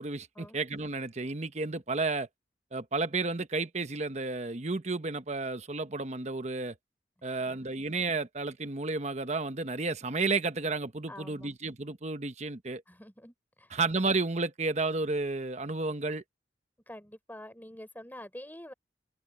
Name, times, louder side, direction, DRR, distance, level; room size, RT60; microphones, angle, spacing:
voice 1, 0.0-2.3 2.7-6.8 7.2-12.8 13.7-16.2, right 3 dB, 40° right, 1.0 m, -32 dB
voice 2, 7.2-7.7 11.1-11.5 12.9-13.8 16.9-18.7, left 1 dB, 10° left, 5.8 m, -47 dB
open air
head